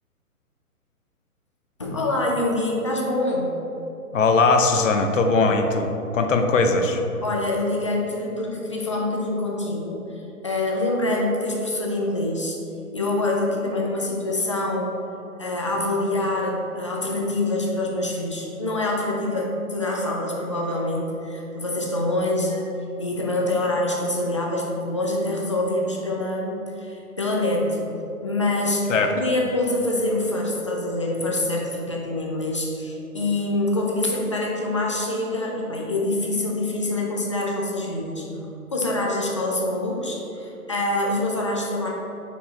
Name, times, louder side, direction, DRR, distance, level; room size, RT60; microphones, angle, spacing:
voice 1, 1.8-3.5 7.2-12.6 12.9-14.9 15.4-22.7 23.0-27.9 28.2-38.2 38.7-41.9, left 2 dB, 25° left, -2 dB, 0.4 m, -25 dB
voice 2, 4.1-7.0 28.9-29.1, left 3 dB, 60° left, 5 dB, 0.8 m, -20 dB
5.4 x 4.7 x 4.0 m, 3.0 s
figure-of-eight pair, 130°, 44 cm